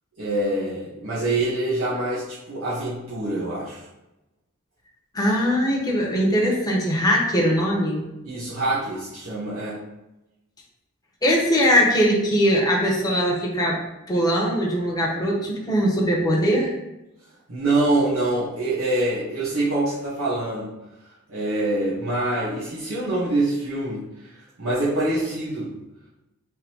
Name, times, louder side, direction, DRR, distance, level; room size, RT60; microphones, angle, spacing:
voice 1, 0.2-3.8 8.2-9.8 17.5-20.7 21.3-25.7, right 2 dB, 70° right, -9 dB, 1.2 m, -25 dB
voice 2, 5.1-8.0 11.2-13.8 14.1-16.7, equal, 15° left, -3 dB, 0.9 m, -21 dB
3.8 x 2.9 x 4.6 m, 0.95 s
head